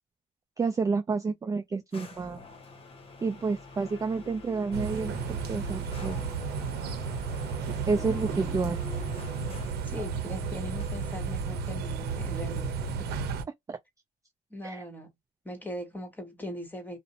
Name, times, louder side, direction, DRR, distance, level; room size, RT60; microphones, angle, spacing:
voice 1, 0.6-2.4 3.2-6.2 7.9-8.8 13.7-13.8 14.6-14.8, right 4 dB, 20° right, 0.4 m, -30 dB
sound 1, 1.9-9.9 10.8-11.7, left 3 dB, 35° left, 0.9 m, -47 dB
sound 2, 4.7-13.4, right 5 dB, 70° right, 0.7 m, -33 dB
voice 2, 7.9-8.6 9.8-13.1 14.5-15.1 15.4-17.0, equal, 10° left, 1.2 m, -40 dB
2.5 x 2.0 x 2.6 m
cardioid pair, 110°, 17 cm